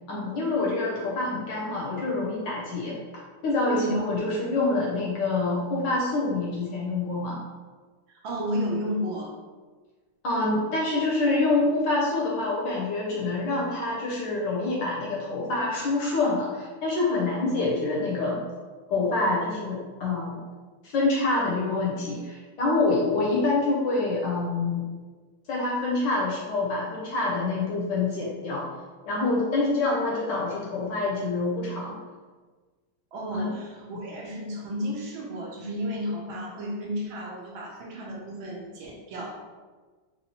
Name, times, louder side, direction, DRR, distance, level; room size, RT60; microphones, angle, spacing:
voice 1, 0.1-3.0 3.4-7.4 10.2-18.4 18.9-20.4 20.8-24.8 25.5-28.7 29.1-32.0 33.3-33.5, left 3 dB, 70° left, -4 dB, 1.1 m, -26 dB
voice 2, 8.1-9.3 33.1-39.3, equal, 70° right, -2 dB, 1.4 m, -32 dB
4.1 x 2.9 x 2.8 m, 1.4 s
omnidirectional pair, 2.4 m